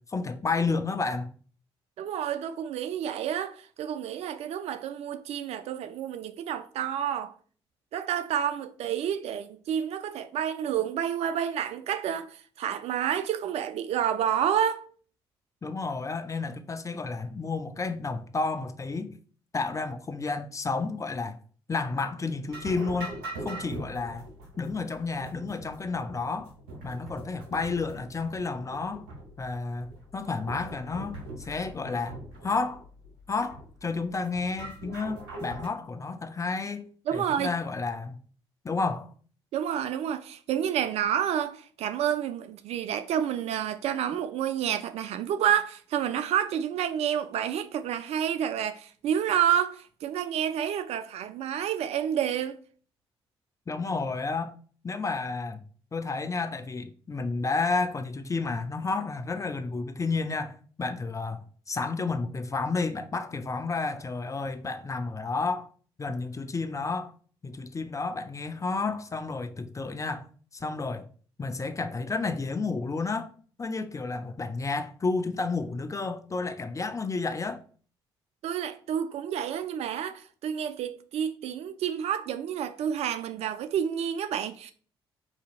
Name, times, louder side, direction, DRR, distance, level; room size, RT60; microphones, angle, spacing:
voice 1, 0.0-1.3 15.6-19.1 19.5-21.4 21.7-23.2 23.4-24.3 24.6-26.5 26.8-29.0 29.4-32.2 32.4-32.8 33.3-38.1 38.6-39.1 53.7-54.5 54.8-55.6 55.9-65.7 66.0-67.1 67.4-70.3 70.5-71.1 71.4-73.3 73.6-77.6, left 4 dB, 25° left, 0.5 m, -31 dB
voice 2, 2.0-7.3 7.9-14.8 37.1-37.5 39.5-52.6 78.4-84.7, right 9 dB, 60° right, 0.4 m, -29 dB
sound 1, 22.5-35.7, right 2 dB, 80° right, 1.0 m, -42 dB
5.1 x 2.7 x 2.4 m
hypercardioid pair, 45°, 12 cm